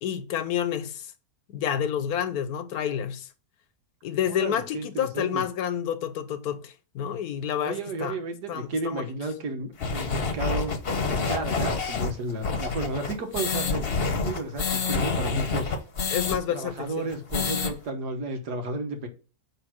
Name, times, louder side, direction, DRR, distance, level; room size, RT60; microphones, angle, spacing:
voice 1, 0.0-1.1 1.5-3.3 4.0-8.1 8.5-9.1 16.1-17.0, left 9 dB, 75° left, 1.2 m, -29 dB
voice 2, 4.3-5.4 7.6-10.7 11.0-15.7 16.5-19.1, right 2 dB, 90° right, 1.9 m, -33 dB
sound 1, 9.8-16.4 16.7-16.8 17.1-17.7, left 4 dB, 45° left, 1.1 m, -27 dB
9.0 x 3.3 x 6.0 m
omnidirectional pair, 1.7 m